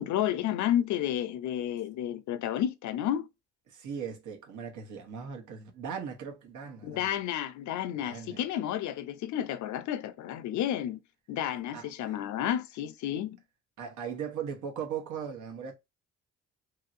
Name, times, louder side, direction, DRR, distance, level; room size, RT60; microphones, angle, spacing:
voice 1, 0.0-3.3 6.8-11.0 11.3-13.4, left 11 dB, 75° left, 0.5 m, -31 dB
voice 2, 3.7-7.2 7.9-8.4 11.7-12.2 13.8-15.7, right 7 dB, 75° right, 1.0 m, -39 dB
3.0 x 2.8 x 2.5 m
cardioid pair, 90°, 30 cm